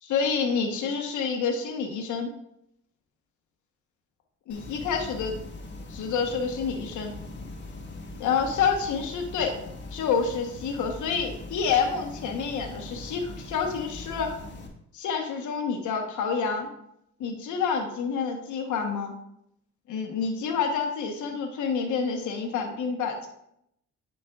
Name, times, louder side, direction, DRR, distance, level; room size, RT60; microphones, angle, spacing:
voice 1, 0.0-2.3 4.5-5.4 5.9-7.1 8.2-9.6 9.9-14.3 14.9-16.7 17.2-19.1 19.9-23.3, left 6 dB, 75° left, 3 dB, 1.2 m, -28 dB
sound 1, 4.5-14.7, left 2 dB, 35° left, 1.5 m, -41 dB
9.5 x 5.3 x 2.4 m, 0.74 s
cardioid pair, 90°, 30 cm